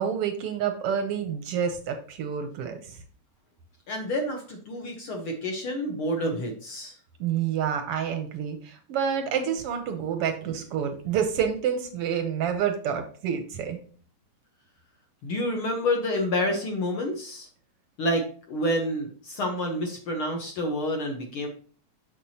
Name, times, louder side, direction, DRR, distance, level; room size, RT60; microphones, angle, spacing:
voice 1, 0.0-3.0 7.2-13.8, right 8 dB, 75° right, 6 dB, 1.4 m, -28 dB
voice 2, 3.9-7.0 15.2-17.5 18.0-21.5, left 1 dB, 60° left, 2 dB, 1.4 m, -28 dB
7.4 x 6.7 x 2.8 m, 0.44 s
omnidirectional pair, 3.4 m